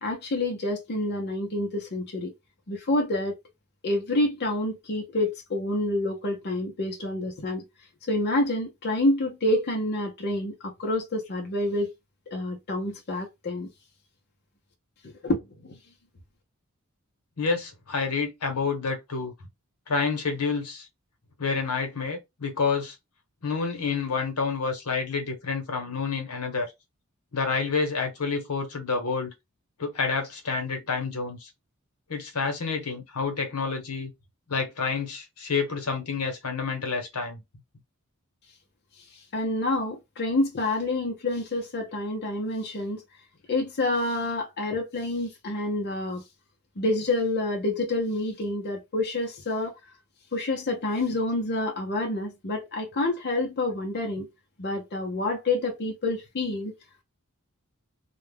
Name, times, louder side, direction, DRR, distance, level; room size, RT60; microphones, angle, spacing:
voice 1, 0.0-2.3 2.7-3.4 3.8-7.6 8.1-11.9 12.3-13.7 15.0-15.8 39.1-43.0 43.5-46.2 46.8-49.7 50.3-54.3 54.6-56.7, left 2 dB, 50° left, 0.6 m, -28 dB
voice 2, 17.4-19.3 19.9-20.9 21.4-22.9 23.4-26.7 27.3-29.3 29.8-31.5 32.1-34.1 34.5-37.4, left 4 dB, 80° left, 1.0 m, -28 dB
2.3 x 2.1 x 3.3 m
head